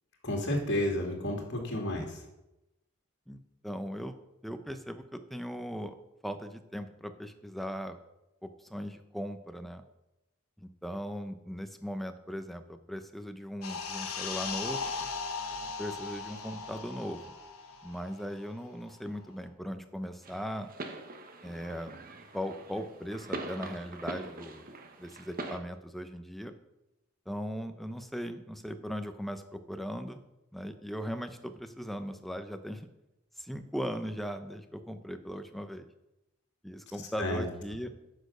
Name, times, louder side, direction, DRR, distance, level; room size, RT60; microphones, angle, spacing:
voice 1, 0.2-2.2 37.2-37.5, left 1 dB, 55° left, 1 dB, 2.5 m, -31 dB
voice 2, 3.6-6.0 6.2-8.0 8.4-9.8 10.6-14.9 15.8-17.3 17.8-20.7 21.4-21.9 22.3-24.7 25.0-26.5 27.3-30.2 30.5-32.9 33.4-35.9 36.6-37.9, equal, ahead, 8 dB, 0.6 m, -38 dB
sound 1, 13.6-18.7 19.0-19.2, left 4 dB, 85° left, 1.3 m, -38 dB
sound 2, 20.2-25.6, right 2 dB, 40° right, 1.1 m, -43 dB
9.8 x 6.4 x 6.6 m, 0.93 s
head